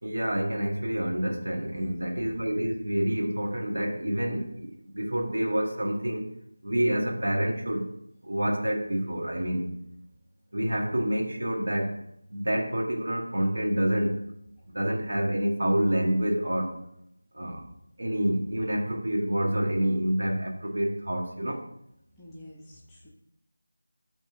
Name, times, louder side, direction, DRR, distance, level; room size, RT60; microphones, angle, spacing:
voice 1, 0.0-6.3 6.6-7.9 8.2-9.7 10.5-12.0 12.3-14.2 14.7-16.8 17.3-17.6 18.0-21.6, equal, 80° right, 2 dB, 1.4 m, -28 dB
voice 2, 1.7-2.4 22.2-23.1, left 1 dB, 5° left, -7 dB, 0.6 m, -46 dB
9.3 x 3.3 x 4.4 m, 0.77 s
figure-of-eight pair, 175°, 0 cm